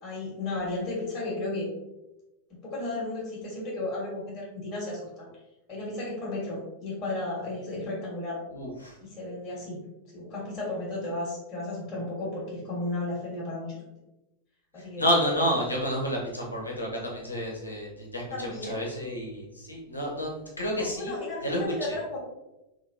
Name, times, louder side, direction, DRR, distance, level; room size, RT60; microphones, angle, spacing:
voice 1, 0.0-1.7 2.6-5.3 5.7-8.4 9.0-9.8 10.1-13.9 14.7-15.0 18.3-18.9 20.8-22.2, left 2 dB, 30° left, -6 dB, 1.3 m, -34 dB
voice 2, 8.5-9.0 15.0-21.1 21.4-21.6 21.9-22.0, equal, 80° left, -2 dB, 0.9 m, -30 dB
3.1 x 2.8 x 2.6 m, 0.96 s
figure-of-eight pair, 90°, 0 cm